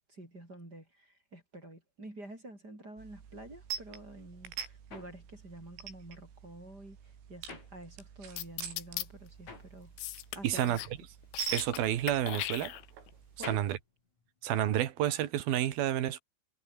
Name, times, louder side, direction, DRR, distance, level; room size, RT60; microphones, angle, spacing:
voice 1, 0.1-7.0 7.3-9.9 10.3-10.8 13.4-13.6, right 1 dB, 20° right, 6.8 m, -49 dB
sound 1, 3.0-13.7, right 8 dB, 85° right, 6.9 m, -46 dB
sound 2, 4.2-8.4 8.7-15.0, left 4 dB, 35° left, 6.8 m, -52 dB
sound 3, 8.4-9.1 10.0-11.0 11.2-11.8 12.1-13.1, left 16 dB, 80° left, 3.5 m, -38 dB
voice 2, 10.4-10.8 11.5-12.7 13.5-13.8 14.4-16.2, right 12 dB, 60° right, 3.0 m, -30 dB
omnidirectional pair, 5.7 m